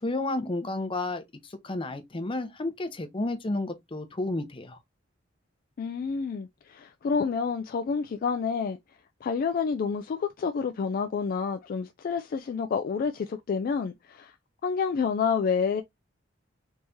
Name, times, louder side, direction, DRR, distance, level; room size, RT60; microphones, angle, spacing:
voice 1, 0.0-4.8, left 2 dB, 25° left, 0.7 m, -31 dB
voice 2, 5.8-8.8 9.2-14.3 14.6-15.8, left 5 dB, 50° left, 0.3 m, -29 dB
3.5 x 3.1 x 2.6 m
head